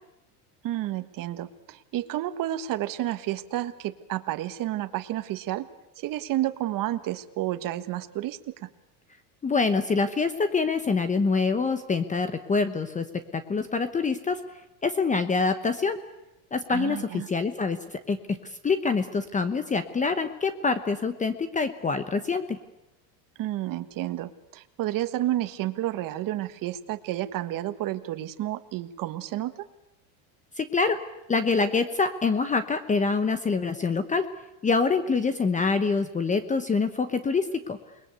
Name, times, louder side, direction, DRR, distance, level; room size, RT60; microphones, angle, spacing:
voice 1, 0.6-5.7 6.0-8.7 16.7-17.3 23.4-29.6, right 14 dB, 45° right, 10 dB, 1.5 m, -31 dB
voice 2, 9.4-14.4 14.8-16.0 16.5-18.4 18.6-22.6 30.6-31.0 31.3-34.3 34.6-37.8, left 4 dB, 15° left, 11 dB, 1.0 m, -25 dB
28.5 x 21.5 x 8.3 m, 0.88 s
cardioid pair, 145°, 47 cm